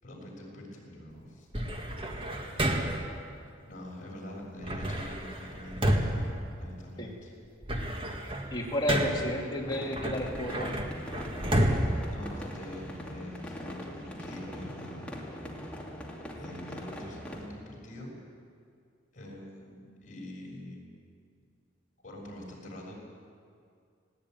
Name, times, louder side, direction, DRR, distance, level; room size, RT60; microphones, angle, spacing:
voice 1, 0.0-1.5 3.7-7.3 12.1-15.2 16.4-18.1 19.1-21.0 22.0-22.9, left 1 dB, 40° left, -2 dB, 6.6 m, -44 dB
sound 1, 1.5-3.2 4.6-7.1 7.5-9.4 9.9-13.0, right 1 dB, 25° right, 1.9 m, -31 dB
voice 2, 8.5-10.7, equal, 20° left, -2 dB, 3.1 m, -31 dB
sound 2, 9.6-17.5, equal, 5° left, 2.6 m, -42 dB
20.0 x 17.0 x 9.4 m, 2.3 s
head